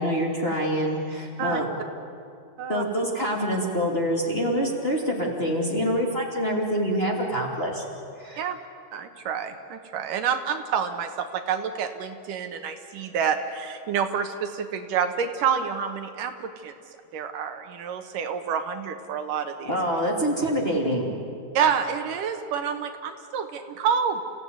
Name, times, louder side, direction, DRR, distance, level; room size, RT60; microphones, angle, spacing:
voice 1, 0.0-1.7 2.7-7.8 8.2-8.4 19.7-21.2, equal, 20° left, -2 dB, 2.6 m, -26 dB
voice 2, 8.9-16.7 17.1-19.7 21.5-24.2, right 7 dB, 75° right, 7 dB, 2.7 m, -28 dB
29.0 x 16.0 x 9.5 m, 2.5 s
omnidirectional pair, 4.0 m